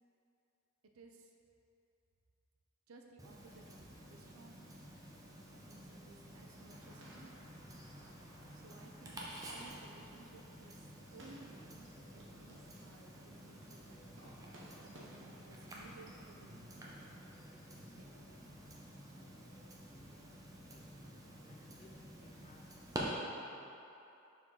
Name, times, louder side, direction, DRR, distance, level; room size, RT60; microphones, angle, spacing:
voice 1, 0.9-1.3 2.9-4.8 5.2-7.3 8.5-14.2 14.8-17.1 17.9-18.8, right 3 dB, 80° right, 2 dB, 0.6 m, -59 dB
Tick-tock, 3.2-23.0, right 1 dB, 15° right, 0.6 m, -51 dB
sound 1, 5.0-17.9, right 1 dB, 60° right, 0.9 m, -63 dB
voice 2, 20.5-20.9 21.4-23.7, left 2 dB, 30° left, 0 dB, 0.4 m, -65 dB
6.3 x 4.6 x 3.7 m, 2.9 s
head